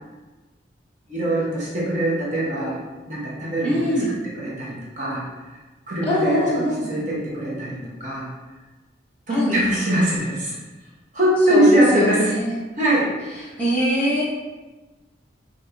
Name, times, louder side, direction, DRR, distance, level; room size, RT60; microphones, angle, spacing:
voice 1, 1.1-2.8 3.1-3.9 4.4-5.2 5.9-8.3 9.3-10.6 11.1-12.3 12.8-13.1, right 1 dB, 40° right, -6 dB, 0.9 m, -22 dB
voice 2, 3.6-4.1 6.0-6.9 9.3-9.6 11.5-12.6 13.4-14.2, left 1 dB, 5° left, -8 dB, 0.7 m, -23 dB
4.7 x 3.0 x 2.5 m, 1.2 s
head